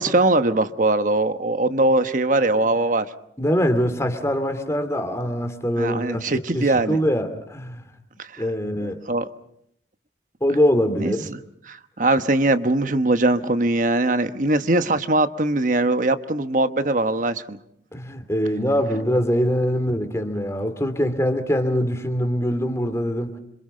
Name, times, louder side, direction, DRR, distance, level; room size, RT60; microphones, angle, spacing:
voice 1, 0.0-3.0 5.8-7.0 8.3-8.4 8.8-9.3 11.0-11.4 11.7-17.6, right 2 dB, 45° right, 10 dB, 1.1 m, -21 dB
voice 2, 3.4-6.2 6.5-7.8 8.4-9.0 10.4-11.3 17.9-23.3, equal, 15° left, 7 dB, 2.5 m, -23 dB
26.5 x 26.5 x 5.5 m, 0.72 s
head